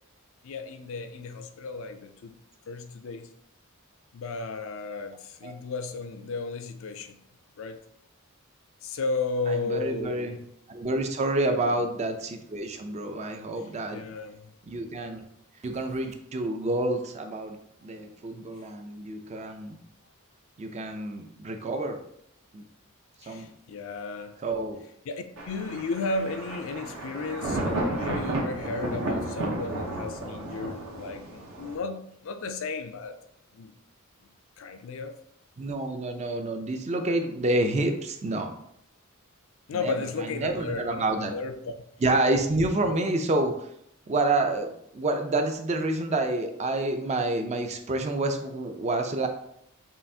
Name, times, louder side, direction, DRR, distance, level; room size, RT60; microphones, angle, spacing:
voice 1, 0.4-2.3 2.7-3.3 4.1-7.2 7.6-7.8 8.8-10.3 11.6-11.9 13.9-14.5 23.2-24.4 25.1-33.2 33.5-33.7 34.6-35.1 39.7-41.7, left 3 dB, 65° left, 8 dB, 0.4 m, -34 dB
voice 2, 9.5-10.4 10.7-14.1 14.6-15.3 15.6-19.8 20.6-22.0 22.5-22.6 23.3-23.5 24.4-24.8 35.6-38.5 39.7-39.9 40.2-41.3 42.0-43.7 44.1-49.3, right 2 dB, 30° right, 5 dB, 0.4 m, -28 dB
Thunder, 25.4-31.8, right 1 dB, 70° right, 0.8 m, -32 dB
5.5 x 2.4 x 2.7 m, 0.73 s
head